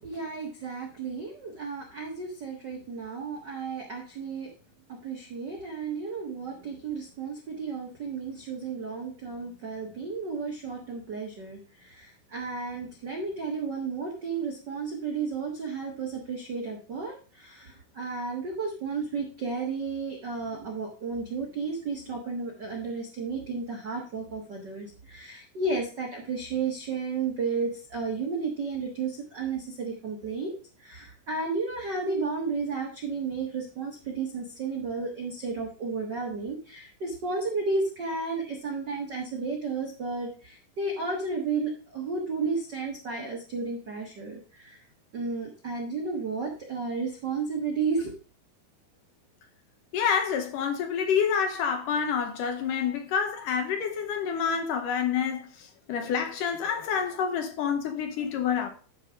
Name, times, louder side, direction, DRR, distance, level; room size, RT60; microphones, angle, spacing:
voice 1, 0.0-4.5 4.9-30.5 30.8-44.8 45.1-48.1, right 4 dB, 65° right, 1.0 m, -33 dB
voice 2, 49.9-55.4 55.9-58.7, left 7 dB, 70° left, 2.3 m, -28 dB
11.5 x 4.8 x 3.6 m
omnidirectional pair, 4.3 m